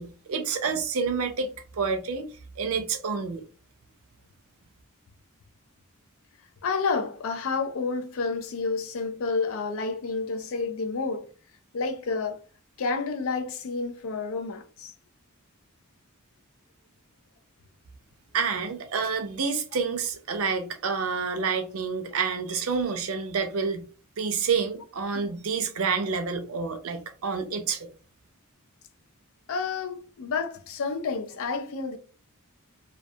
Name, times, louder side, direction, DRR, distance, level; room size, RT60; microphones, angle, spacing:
voice 1, 0.0-3.4 18.3-23.8 24.2-27.9, right 5 dB, 70° right, 0.5 m, -28 dB
voice 2, 6.6-11.3 11.7-12.4 12.8-14.9 25.1-25.3 29.5-32.0, left 4 dB, 65° left, 0.4 m, -30 dB
2.3 x 2.2 x 2.6 m
head